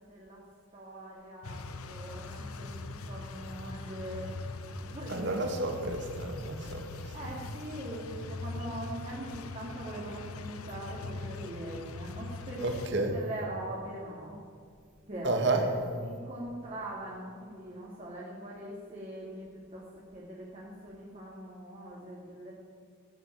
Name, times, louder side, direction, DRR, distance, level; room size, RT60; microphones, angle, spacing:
voice 1, 0.1-0.4 0.7-1.6 1.9-4.3 4.9-5.3 7.1-14.4 15.1-19.8 20.1-22.5, right 1 dB, 30° right, -5 dB, 2.7 m, -42 dB
sound 1, 1.4-12.9, left 3 dB, 80° left, 1.0 m, -42 dB
voice 2, 5.1-7.0 12.6-13.1 15.2-15.6, right 2 dB, 50° right, 3 dB, 2.0 m, -30 dB
15.0 x 9.1 x 9.2 m, 2.2 s
head